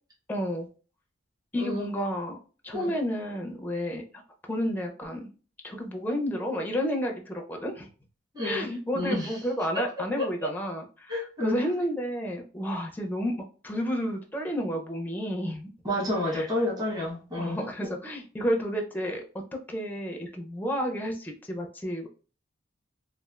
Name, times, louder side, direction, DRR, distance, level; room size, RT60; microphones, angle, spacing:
voice 1, 0.3-0.7 1.5-2.4 2.6-4.0 4.4-5.3 5.6-7.9 8.4-11.1 11.4-13.3 13.6-15.7 16.3-16.5 17.4-19.2 19.5-22.1, equal, 10° left, 2 dB, 0.5 m, -31 dB
voice 2, 1.6-1.9 2.7-2.9 8.3-8.7 8.9-9.4 9.7-9.8 10.2-10.3 11.1-11.6 15.8-17.6, left 1 dB, 20° right, -4 dB, 1.1 m, -29 dB
3.1 x 2.4 x 2.3 m, 0.37 s
head